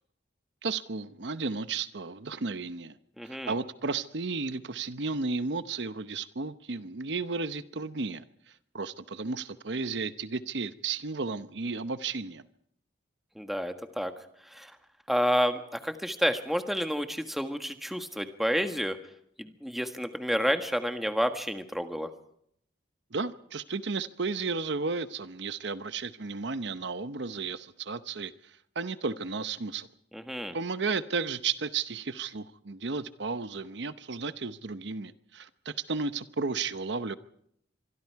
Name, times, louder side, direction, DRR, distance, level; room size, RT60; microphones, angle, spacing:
voice 1, 0.6-3.0 3.2-8.2 8.7-12.4 23.1-29.9 30.5-37.2, right 4 dB, 70° right, 0.9 m, -33 dB
voice 2, 3.2-3.5 13.4-14.1 14.5-14.7 15.1-19.0 19.4-22.1 30.1-30.6, equal, ahead, 1.5 m, -30 dB
25.5 x 23.5 x 4.7 m
head